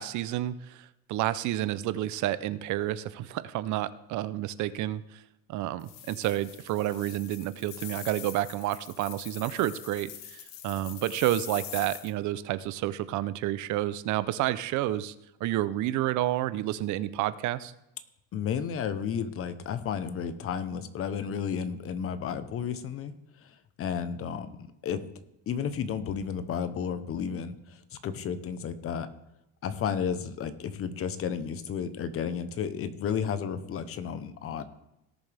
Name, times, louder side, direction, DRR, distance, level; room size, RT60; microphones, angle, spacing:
voice 1, 0.0-5.2 5.5-15.1 15.4-17.7, right 14 dB, 65° right, 16 dB, 0.6 m, -30 dB
sound 1, 5.8-12.1, left 11 dB, 85° left, 1.3 m, -44 dB
voice 2, 18.3-23.1 23.4-25.0 25.5-29.1 29.6-34.6, left 7 dB, 45° left, 12 dB, 0.9 m, -32 dB
18.0 x 7.0 x 3.4 m, 0.88 s
cardioid pair, 135°, 33 cm